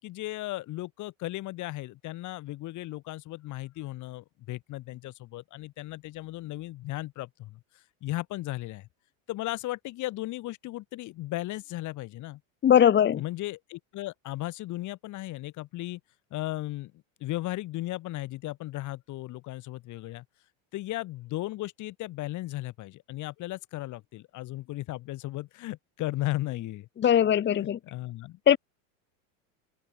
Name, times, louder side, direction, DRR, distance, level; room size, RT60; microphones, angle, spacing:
voice 1, 0.0-7.6 8.0-8.9 9.3-12.4 13.2-16.0 16.3-16.9 17.2-20.2 20.7-26.9 27.6-28.4, left 17 dB, 45° left, 4.4 m, -36 dB
voice 2, 12.6-13.2 27.0-27.8 28.5-28.6, left 9 dB, 25° left, 2.1 m, -20 dB
supercardioid pair, 145°, 42 cm